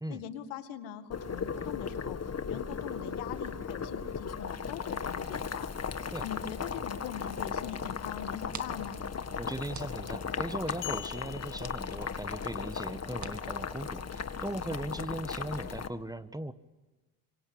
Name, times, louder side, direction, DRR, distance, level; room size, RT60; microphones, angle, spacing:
voice 1, 0.1-2.2 2.5-9.0, left 9 dB, 85° left, 9 dB, 2.2 m, -42 dB
Boiling, 1.1-15.9, left 6 dB, 35° left, 1.8 m, -37 dB
sound 1, 8.2-14.5, right 6 dB, 35° right, 2.0 m, -51 dB
voice 2, 9.4-16.5, right 1 dB, 10° right, 12 dB, 1.5 m, -38 dB
sound 2, 10.8-12.7, left 14 dB, 60° left, 2.2 m, -45 dB
26.5 x 24.5 x 8.8 m, 1.2 s
supercardioid pair, 60°, 46 cm